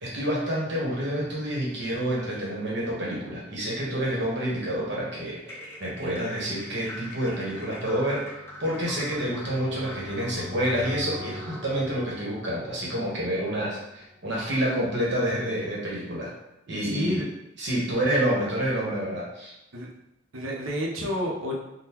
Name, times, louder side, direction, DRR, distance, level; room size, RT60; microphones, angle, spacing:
voice 1, 0.0-16.3 16.7-17.2 17.6-19.5, right 1 dB, 60° right, -5 dB, 1.1 m, -28 dB
sound 1, 4.5-14.6, left 1 dB, 40° right, 0.6 m, -44 dB
sound 2, 5.4-11.8, left 1 dB, 10° left, 0.4 m, -43 dB
voice 2, 16.8-17.3 19.7-19.9 20.3-21.5, equal, 80° right, -2 dB, 0.7 m, -30 dB
3.7 x 2.2 x 2.9 m, 0.89 s
head